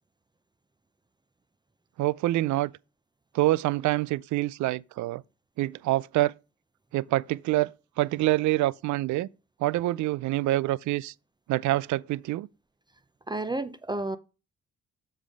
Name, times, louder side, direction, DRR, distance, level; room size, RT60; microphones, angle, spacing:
voice 1, 2.0-2.7 3.3-5.2 5.6-6.3 6.9-7.7 8.0-9.3 9.6-11.1 11.5-12.5, right 16 dB, 75° right, 0.4 m, -26 dB
voice 2, 13.3-14.2, right 2 dB, 15° right, 0.6 m, -31 dB
7.4 x 3.4 x 6.3 m
cardioid pair, 90°, 30 cm